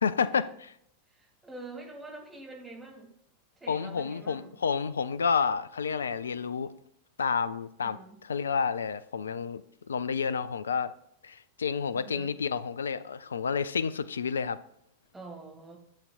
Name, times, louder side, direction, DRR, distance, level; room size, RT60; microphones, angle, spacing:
voice 1, 0.0-0.7 3.7-6.7 7.2-10.9 11.2-14.6, left 6 dB, 70° left, 0.4 m, -30 dB
voice 2, 1.1-3.1 3.6-4.6 7.8-8.2 11.9-12.3 15.1-15.8, right 2 dB, 10° right, 2.3 m, -46 dB
11.5 x 7.4 x 2.4 m
figure-of-eight pair, 90°, 0 cm